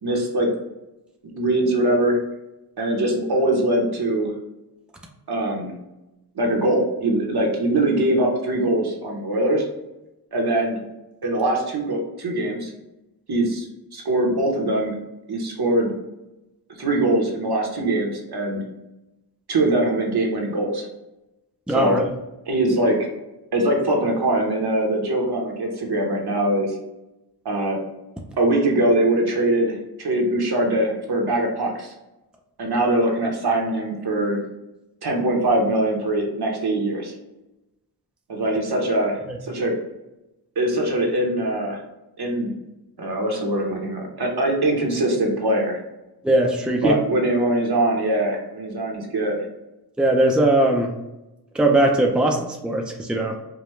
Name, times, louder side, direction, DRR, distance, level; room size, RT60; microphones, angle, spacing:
voice 1, 0.0-0.5 1.4-2.2 2.8-4.3 5.3-5.7 6.3-9.7 10.3-10.8 11.2-12.7 13.3-13.7 13.9-14.9 15.3-15.9 16.8-18.6 19.5-20.8 21.7-22.0 22.5-23.1 23.5-26.8 27.4-27.8 28.4-31.9 32.6-34.5 35.0-37.1 38.3-39.7 40.6-41.8 42.2-42.5 43.0-45.8 46.8-49.4, right 1 dB, 65° right, 0 dB, 1.1 m, -22 dB
voice 2, 21.7-22.0 39.3-39.4 46.2-46.9 50.0-50.9 51.5-53.4, right 1 dB, ahead, 1 dB, 0.5 m, -19 dB
5.1 x 2.3 x 3.1 m, 0.97 s
wide cardioid pair, 80°, 41 cm